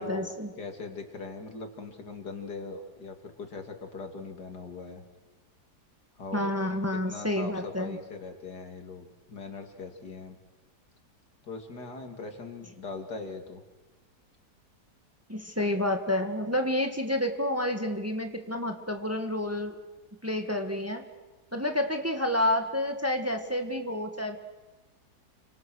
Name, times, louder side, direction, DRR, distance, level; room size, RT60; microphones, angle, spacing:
voice 1, 0.0-0.5 6.3-8.0 15.3-19.7 20.2-21.0 21.5-24.4, left 1 dB, 10° right, 5 dB, 1.6 m, -29 dB
voice 2, 0.6-5.0 6.2-10.4 11.4-13.6, left 4 dB, 80° left, 4 dB, 3.3 m, -40 dB
29.5 x 25.0 x 6.4 m, 1.2 s
omnidirectional pair, 1.7 m